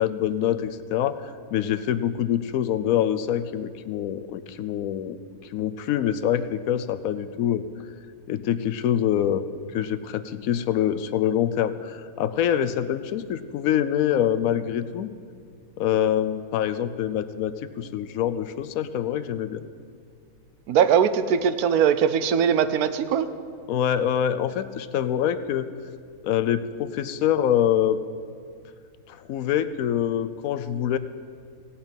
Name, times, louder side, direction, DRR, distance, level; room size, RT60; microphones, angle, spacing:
voice 1, 0.0-5.2 5.5-7.6 8.3-9.5 9.7-15.1 15.8-19.6 23.7-25.7 26.2-28.0 29.1-31.0, left 10 dB, 75° left, 12 dB, 1.0 m, -25 dB
voice 2, 20.7-23.3, right 8 dB, 90° right, 12 dB, 1.1 m, -21 dB
16.5 x 5.7 x 8.8 m, 2.2 s
omnidirectional pair, 1.5 m